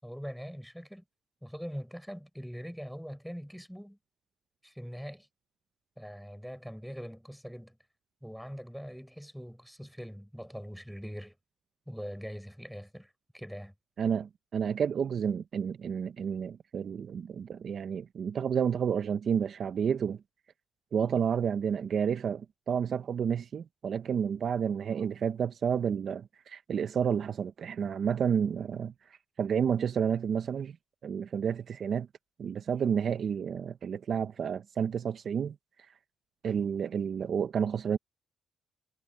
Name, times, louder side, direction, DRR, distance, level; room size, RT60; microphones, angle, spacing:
voice 1, 0.0-1.0 1.4-4.0 4.6-5.3 6.0-7.8 8.2-11.4 11.9-13.7, equal, ahead, 6.6 m, -42 dB
voice 2, 14.0-20.2 20.9-28.9 29.4-30.8 31.0-32.1 32.4-35.5 36.4-38.0, right 7 dB, 55° right, 0.8 m, -30 dB
cardioid pair, 90°, 0 cm